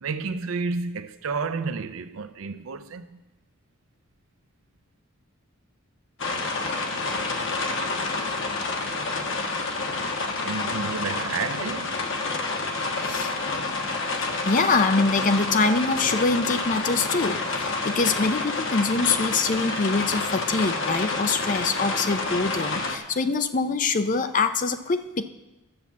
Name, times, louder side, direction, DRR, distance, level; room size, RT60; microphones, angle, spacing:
voice 1, 0.0-3.2 10.4-12.0, right 4 dB, 70° right, 0.5 m, -31 dB
sound 1, 6.2-23.0, left 3 dB, 60° left, 1.3 m, -28 dB
voice 2, 14.5-25.2, left 3 dB, 35° left, 0.5 m, -24 dB
10.0 x 7.2 x 7.3 m
head